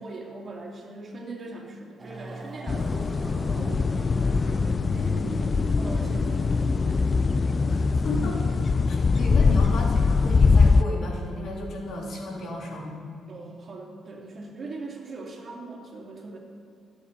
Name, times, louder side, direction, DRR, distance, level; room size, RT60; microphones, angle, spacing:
voice 1, 0.0-6.5 6.8-7.0 9.1-9.6 13.3-16.4, right 2 dB, 45° right, -1 dB, 2.9 m, -41 dB
sound 1, 2.0-8.7, right 1 dB, 30° right, 2.9 m, -40 dB
sound 2, 2.7-10.8, left 4 dB, 35° left, 0.4 m, -22 dB
voice 2, 7.7-8.4 8.9-12.9, left 1 dB, 65° left, -2 dB, 3.3 m, -34 dB
24.0 x 8.6 x 4.1 m, 2.2 s
cardioid pair, 90°, 0 cm